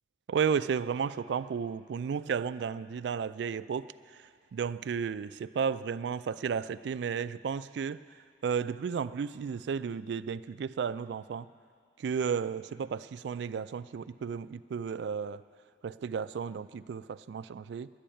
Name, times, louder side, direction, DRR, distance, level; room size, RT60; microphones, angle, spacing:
voice 1, 0.3-3.9 4.5-8.0 8.4-11.5 12.0-15.4 15.8-17.9, right 6 dB, 75° right, 15 dB, 0.3 m, -33 dB
11.5 x 8.5 x 9.0 m, 2.2 s
head